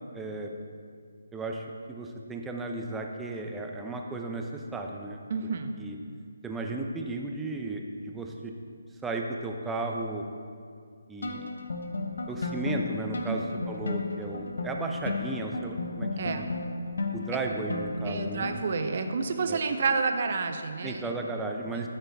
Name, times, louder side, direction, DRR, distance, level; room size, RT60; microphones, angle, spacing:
voice 1, 0.1-0.5 1.3-5.2 5.8-6.0 6.4-8.5 9.0-10.2 11.1-11.5 12.3-16.5 17.1-18.5 19.5-19.6 20.8-21.9, right 2 dB, 5° right, 1 dB, 0.5 m, -34 dB
voice 2, 5.3-5.7 13.3-13.4 16.1-16.4 17.3-17.4 18.0-21.1 21.7-21.8, right 4 dB, 50° right, 7 dB, 0.7 m, -29 dB
sound 1, 11.2-18.9, left 3 dB, 75° left, 0.8 m, -34 dB
13.0 x 4.5 x 3.4 m, 2.2 s
hypercardioid pair, 155°, 0 cm